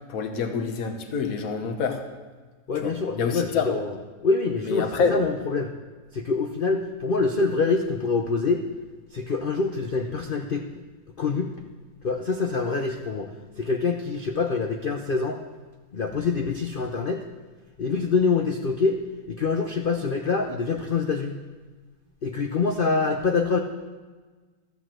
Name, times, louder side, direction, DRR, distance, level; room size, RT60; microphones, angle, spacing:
voice 1, 0.0-2.0 2.7-3.7 4.6-5.2, left 5 dB, 55° left, 6 dB, 1.4 m, -27 dB
voice 2, 2.7-3.9 4.2-5.7 6.1-8.6 9.1-10.8 11.2-11.5 12.0-15.4 15.9-17.2 17.8-19.0 19.3-21.4 22.2-23.6, left 4 dB, 75° left, 3 dB, 0.4 m, -25 dB
13.5 x 5.7 x 7.5 m, 1.4 s
omnidirectional pair, 2.0 m